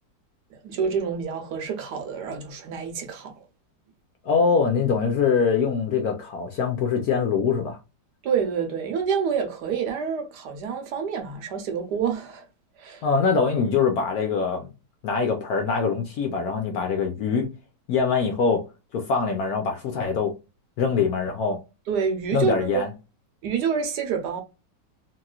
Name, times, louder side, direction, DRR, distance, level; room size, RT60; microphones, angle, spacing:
voice 1, 0.5-3.4 8.2-12.4 12.8-13.1 21.9-22.9 23.4-24.4, right 6 dB, 70° right, 1.2 m, -27 dB
voice 2, 4.2-7.8 13.0-14.7 15.0-17.5 17.9-18.6 18.9-20.3 20.8-21.6 22.3-22.9, left 5 dB, 70° left, 0.9 m, -23 dB
3.0 x 2.8 x 2.3 m
omnidirectional pair, 2.0 m